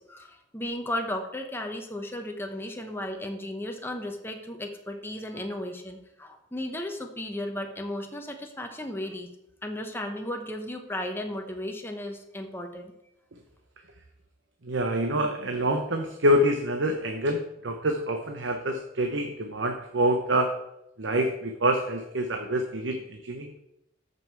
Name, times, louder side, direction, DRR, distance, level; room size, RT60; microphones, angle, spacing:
voice 1, 0.0-9.3 9.6-12.9, left 1 dB, 10° left, 4 dB, 0.9 m, -35 dB
voice 2, 14.6-20.6 21.0-23.6, equal, 75° right, 4 dB, 0.9 m, -26 dB
13.5 x 5.5 x 4.6 m, 0.85 s
head